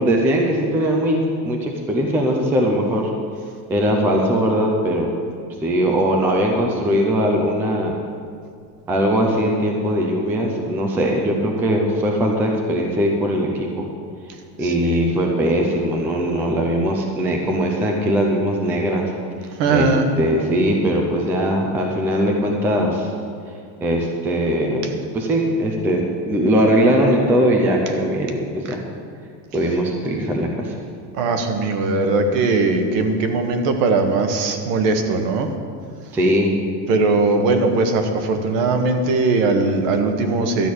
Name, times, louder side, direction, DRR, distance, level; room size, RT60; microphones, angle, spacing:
voice 1, 0.0-3.1 3.7-5.1 5.6-7.9 8.9-13.9 14.6-19.1 19.7-19.9 20.2-23.1 23.8-24.9 25.1-28.8 29.5-30.8 36.1-36.5, equal, 5° right, 1 dB, 0.3 m, -20 dB
voice 2, 14.6-15.1 19.5-20.0 31.1-35.5 36.9-40.7, right 3 dB, 60° right, 5 dB, 1.5 m, -19 dB
12.5 x 6.3 x 8.4 m, 2.2 s
cardioid pair, 170°, 45 cm